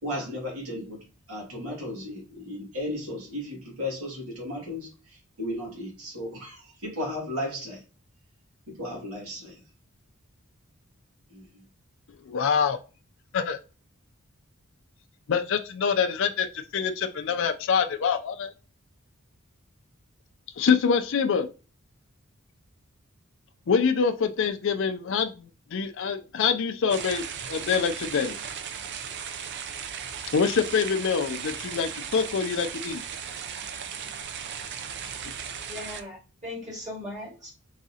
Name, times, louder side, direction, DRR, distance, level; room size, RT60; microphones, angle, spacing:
voice 1, 0.0-7.8 8.7-9.6 11.3-11.6, left 1 dB, 90° right, 2.1 m, -35 dB
voice 2, 12.3-12.8 13.3-13.6 15.3-18.5 20.6-21.5 23.7-25.5 25.7-28.4 30.3-33.0, left 6 dB, 60° left, 0.4 m, -25 dB
sound 1, 26.9-36.0, right 7 dB, 55° right, 0.5 m, -36 dB
voice 3, 35.7-37.5, left 1 dB, 35° right, 2.0 m, -39 dB
4.0 x 3.6 x 2.8 m
head